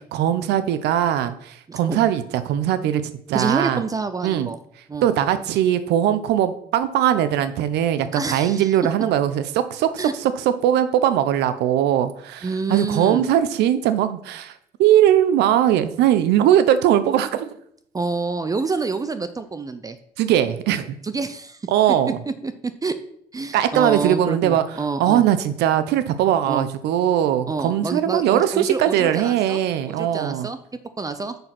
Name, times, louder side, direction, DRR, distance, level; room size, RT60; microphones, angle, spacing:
voice 1, 0.1-3.0 3.3-3.8 4.2-4.5 5.0-17.5 20.2-21.0 21.7-22.2 23.5-24.6 25.0-30.5, right 11 dB, 80° right, 12 dB, 0.7 m, -20 dB
voice 2, 3.3-4.6 4.9-5.1 8.1-8.7 10.0-10.1 12.4-13.3 17.9-20.0 21.0-21.6 22.3-23.0 23.3-25.2 26.5-26.7 27.5-29.6 29.9-30.6 31.0-31.4, right 4 dB, 20° right, 11 dB, 0.6 m, -27 dB
6.7 x 6.3 x 5.9 m, 0.68 s
cardioid pair, 110°, 17 cm